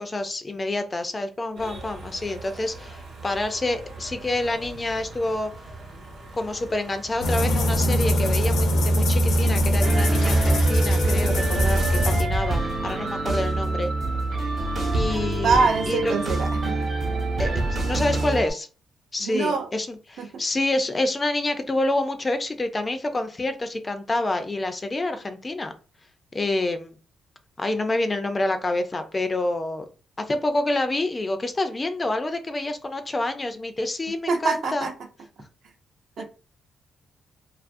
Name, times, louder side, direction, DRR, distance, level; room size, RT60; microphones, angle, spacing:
voice 1, 0.0-5.5 6.4-13.9 14.9-16.1 17.4-18.7 19.1-25.7 26.3-27.0 27.6-29.9 30.3-34.9 36.2-36.3, left 2 dB, 25° left, 8 dB, 0.3 m, -27 dB
sound 1, 1.6-12.5, right 2 dB, 90° right, 0.9 m, -42 dB
sound 2, 7.2-12.2, equal, 80° left, 0.6 m, -21 dB
sound 3, 9.8-18.5, right 2 dB, 45° right, 0.8 m, -26 dB
voice 2, 15.4-16.9 19.2-19.7 20.2-20.3 34.3-34.9 36.2-36.3, right 4 dB, 70° right, 3 dB, 0.6 m, -24 dB
2.6 x 2.4 x 2.5 m, 0.35 s
cardioid pair, 115°, 0 cm